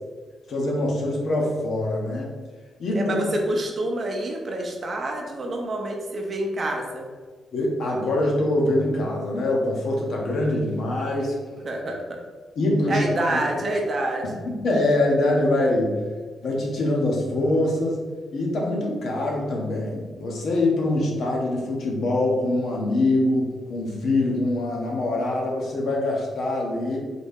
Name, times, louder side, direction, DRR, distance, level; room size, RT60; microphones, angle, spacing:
voice 1, 0.5-2.3 2.8-3.3 7.5-11.4 12.6-13.0 14.5-16.0 16.4-18.0 18.3-27.0, left 1 dB, 55° left, -1 dB, 0.8 m, -24 dB
voice 2, 2.9-7.1 11.6-12.2 12.9-14.5, right 1 dB, 30° right, 1 dB, 0.5 m, -27 dB
4.0 x 2.7 x 3.5 m, 1.5 s
wide cardioid pair, 165°, 0 cm